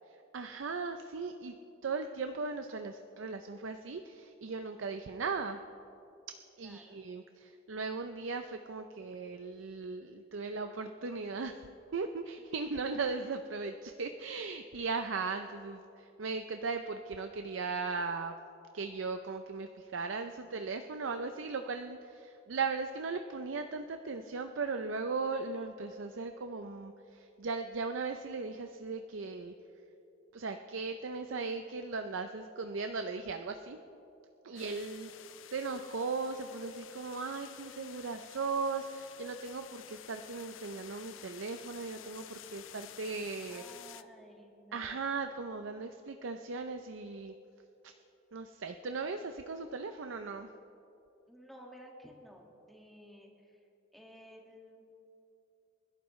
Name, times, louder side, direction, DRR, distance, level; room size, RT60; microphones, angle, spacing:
voice 1, 0.3-1.5 1.8-5.6 6.6-11.6 11.9-18.3 18.7-29.5 30.3-33.8 34.4-35.1 35.5-43.6 44.7-47.3 47.8-47.9 48.3-50.5, right 4 dB, 80° right, 7 dB, 0.6 m, -37 dB
voice 2, 6.6-7.0 34.5-34.9 43.5-45.1 51.3-53.6 53.9-55.1, equal, ahead, -1 dB, 1.9 m, -54 dB
sound 1, 34.6-44.0, left 11 dB, 85° left, 0.5 m, -51 dB
28.5 x 11.5 x 3.2 m, 2.9 s
head